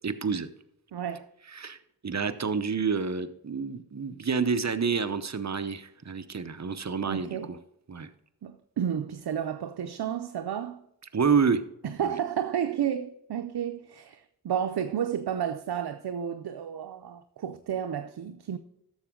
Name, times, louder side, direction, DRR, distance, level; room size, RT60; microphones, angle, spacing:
voice 1, 0.0-0.5 1.5-1.8 2.0-7.6 7.9-8.1 11.1-11.6 12.0-12.2, right 5 dB, 45° right, 0.9 m, -28 dB
voice 2, 0.9-1.3 7.1-7.5 8.4-10.8 11.8-18.6, right 9 dB, 85° right, 0.6 m, -32 dB
11.5 x 7.1 x 3.7 m
cardioid pair, 40°, 37 cm